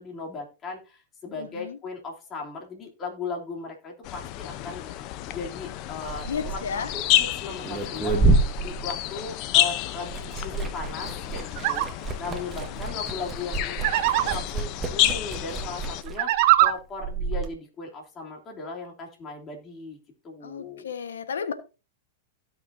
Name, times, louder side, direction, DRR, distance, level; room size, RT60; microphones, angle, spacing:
voice 1, 0.0-20.0 20.2-20.9, left 4 dB, 25° left, 3.0 m, -38 dB
voice 2, 1.3-1.8 6.3-6.9 7.7-8.3 12.7-12.8 20.4-21.5, left 6 dB, 90° left, 1.3 m, -34 dB
sound 1, 4.0-16.0, left 14 dB, 45° left, 0.7 m, -30 dB
Liquid, 5.9-9.6 9.9-17.5, right 3 dB, 20° right, 1.6 m, -29 dB
sound 2, 11.6-11.9 13.8-14.3 16.1-16.7, right 15 dB, 55° right, 0.9 m, -21 dB
16.5 x 6.0 x 2.7 m
hypercardioid pair, 120°, 0 cm